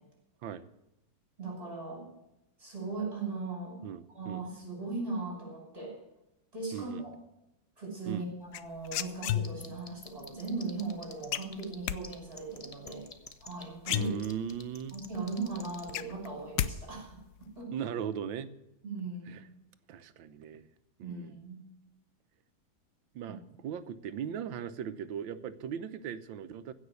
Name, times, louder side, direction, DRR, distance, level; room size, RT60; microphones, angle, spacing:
voice 1, 1.4-2.1 2.6-3.8 4.1-5.9 6.5-7.1 7.8-13.1 13.4-14.1 14.9-17.7 18.8-19.4 21.0-21.6 23.3-23.4, right 3 dB, 30° right, -2 dB, 6.0 m, -38 dB
voice 2, 3.8-4.4 6.7-7.1 8.1-8.3 13.9-15.0 17.7-18.5 19.3-19.4 19.9-20.7 21.0-21.4 23.1-26.7, right 8 dB, 85° right, 12 dB, 1.6 m, -38 dB
sound 1, 8.5-9.8 11.3-12.0 13.4-13.5 13.8-14.6 15.0-15.1 15.5-16.7 17.0-17.4, left 11 dB, 70° left, 1.1 m, -32 dB
sound 2, 9.2-11.7 12.0-15.9, left 3 dB, 25° left, 1.0 m, -47 dB
16.0 x 6.0 x 9.6 m, 0.89 s
omnidirectional pair, 2.0 m